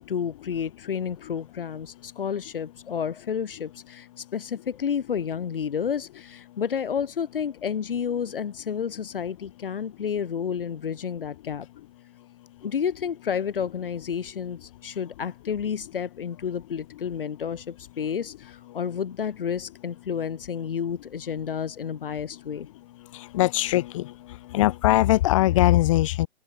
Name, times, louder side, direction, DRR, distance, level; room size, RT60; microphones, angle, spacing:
voice 1, 0.0-11.7 12.6-22.7, left 7 dB, 55° left, 5.5 m, -30 dB
voice 2, 23.1-24.1 24.5-26.3, left 15 dB, 30° left, 7.9 m, -21 dB
open air
hypercardioid pair, 165°, 33 cm